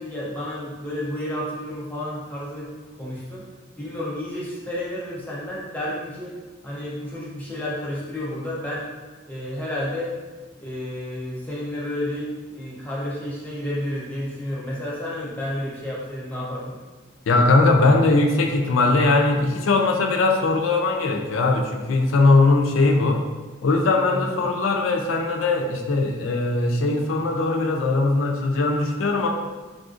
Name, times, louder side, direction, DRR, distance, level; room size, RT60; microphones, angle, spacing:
voice 1, 0.0-2.7 3.0-3.5 3.8-6.4 6.6-8.9 9.3-10.1 10.6-16.8 24.1-24.3, left 1 dB, 10° left, -7 dB, 0.6 m, -31 dB
voice 2, 17.3-23.2 23.6-29.3, left 3 dB, 90° left, 3 dB, 0.4 m, -20 dB
3.4 x 2.5 x 2.4 m, 1.3 s
head